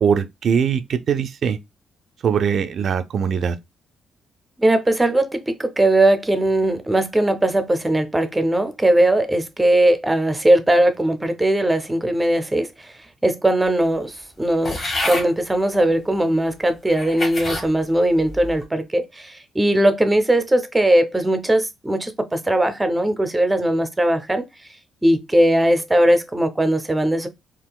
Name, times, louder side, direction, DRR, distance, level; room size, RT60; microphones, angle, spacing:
voice 1, 0.0-1.6 2.2-3.6, right 7 dB, 60° right, 0.3 m, -21 dB
voice 2, 4.6-12.9 13.2-14.8 15.1-24.4 25.0-27.3, right 1 dB, 15° right, 0.6 m, -19 dB
sound 1, 14.6-15.3 16.1-16.2 16.9-17.7 18.2-18.6, left 2 dB, 40° left, 1.1 m, -27 dB
3.6 x 2.4 x 2.3 m
cardioid pair, 90°, 0 cm